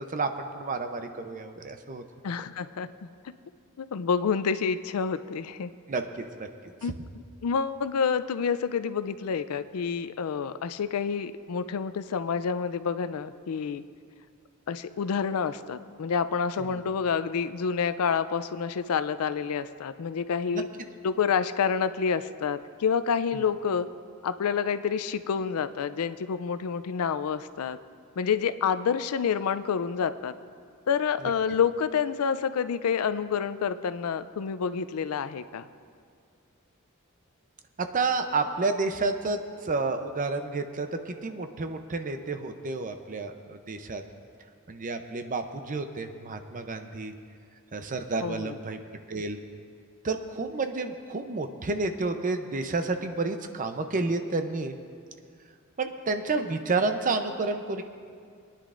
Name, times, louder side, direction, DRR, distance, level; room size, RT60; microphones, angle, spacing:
voice 1, 0.0-2.0 5.9-6.5 16.6-16.8 23.3-23.4 31.2-31.3 37.8-44.0 44.7-47.1 47.7-48.8 49.1-49.4 50.0-54.8 55.8-57.8, right 3 dB, 40° right, 7 dB, 0.6 m, -30 dB
voice 2, 2.2-3.1 3.8-5.7 6.8-13.8 14.7-20.7 21.0-23.9 24.2-27.8 28.2-30.3 30.9-35.6 48.2-48.6, left 6 dB, 85° left, 13 dB, 0.4 m, -28 dB
22.0 x 10.0 x 2.5 m, 2.2 s
head